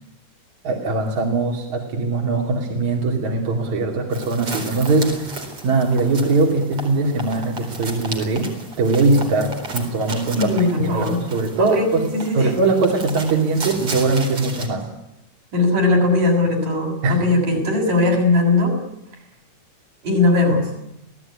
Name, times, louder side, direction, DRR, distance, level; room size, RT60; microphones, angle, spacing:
voice 1, 0.6-8.5 8.8-12.1 12.3-14.9 17.0-17.2, right 3 dB, 65° right, 0 dB, 4.0 m, -21 dB
sound 1, 4.1-14.7, right 2 dB, 45° right, 5.2 m, -34 dB
voice 2, 10.3-11.2 11.6-12.5 15.5-18.7 20.0-20.7, left 2 dB, 85° right, 1 dB, 8.6 m, -19 dB
27.5 x 18.5 x 9.9 m, 0.84 s
omnidirectional pair, 3.6 m